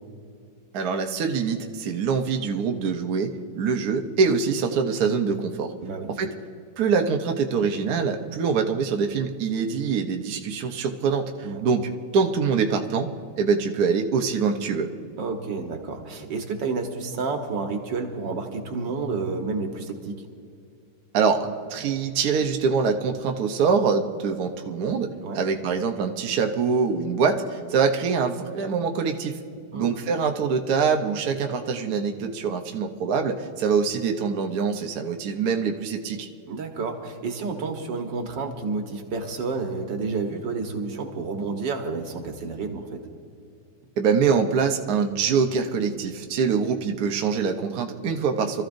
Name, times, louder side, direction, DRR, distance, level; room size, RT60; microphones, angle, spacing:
voice 1, 0.7-5.7 6.2-6.3 6.8-13.1 13.4-14.9 21.1-29.4 29.7-36.3 44.0-48.6, right 5 dB, 65° right, 4 dB, 1.3 m, -24 dB
voice 2, 15.2-20.2 25.2-25.4 29.7-30.0 36.5-43.0, right 4 dB, 80° right, 4 dB, 1.9 m, -30 dB
25.5 x 14.0 x 2.6 m, 2.4 s
omnidirectional pair, 1.9 m